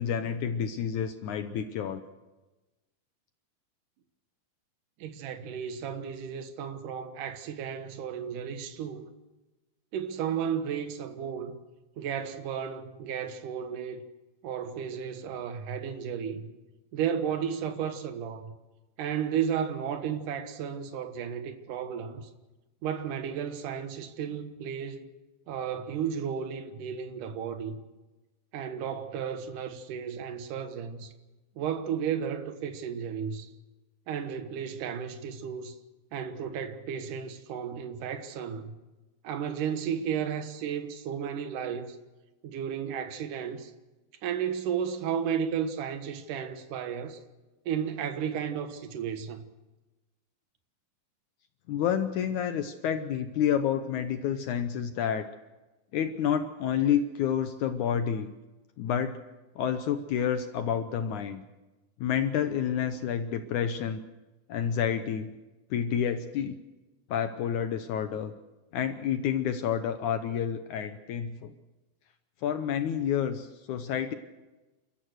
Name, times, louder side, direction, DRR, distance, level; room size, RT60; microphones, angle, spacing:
voice 1, 0.0-2.0 51.7-55.3 55.9-58.3 58.8-59.2 59.6-61.4 62.0-64.0 64.5-65.3 65.7-66.6 67.1-68.3 68.7-71.5 72.4-74.1, left 8 dB, 70° left, 2.0 m, -29 dB
voice 2, 5.0-9.1 9.9-11.6 12.0-14.0 14.4-16.5 16.9-18.5 19.0-22.3 22.8-25.1 25.5-27.8 28.5-31.1 31.6-33.5 34.1-35.7 36.1-38.7 39.2-42.0 42.4-43.7 44.2-47.2 47.7-49.4, right 8 dB, 65° right, 2.8 m, -33 dB
29.5 x 14.0 x 6.4 m
omnidirectional pair, 4.1 m